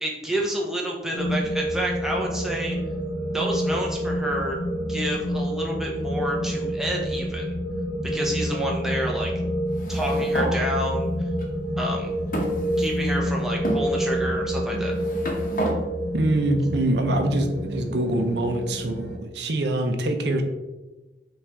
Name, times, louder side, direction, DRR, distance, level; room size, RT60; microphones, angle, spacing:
voice 1, 0.0-2.8 3.3-4.6 4.9-7.4 8.0-9.3 9.9-11.1 11.8-12.1 12.8-14.9, right 1 dB, ahead, -2 dB, 0.7 m, -29 dB
sound 1, 1.1-19.2, equal, 75° left, 1.1 m, -28 dB
sound 2, 9.7-10.6 11.4-11.5 12.3-13.2 13.6-13.8 14.7-15.8, right 1 dB, 45° left, 0.8 m, -30 dB
voice 2, 16.1-20.4, right 1 dB, 65° right, 5 dB, 0.6 m, -24 dB
5.6 x 2.5 x 3.4 m, 1.1 s
head